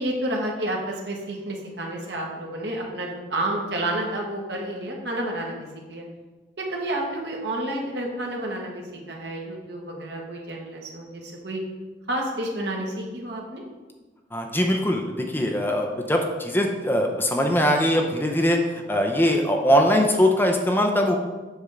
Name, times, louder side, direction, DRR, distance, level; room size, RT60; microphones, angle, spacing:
voice 1, 0.0-6.0 6.6-11.6 12.1-13.6, right 1 dB, 70° right, 0 dB, 1.5 m, -30 dB
voice 2, 14.3-21.2, equal, 10° left, 2 dB, 0.6 m, -21 dB
8.0 x 3.6 x 6.6 m, 1.3 s
head